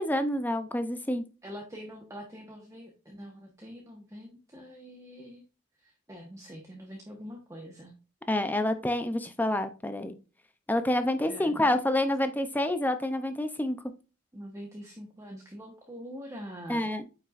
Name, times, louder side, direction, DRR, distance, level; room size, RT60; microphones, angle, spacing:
voice 1, 0.0-1.2 8.3-10.1 10.7-13.8 16.7-17.0, left 1 dB, 10° left, 9 dB, 0.5 m, -28 dB
voice 2, 1.4-5.5 5.8-7.9 11.3-11.7 14.3-16.9, equal, 15° right, 0 dB, 1.1 m, -44 dB
8.9 x 5.6 x 2.5 m, 0.33 s
head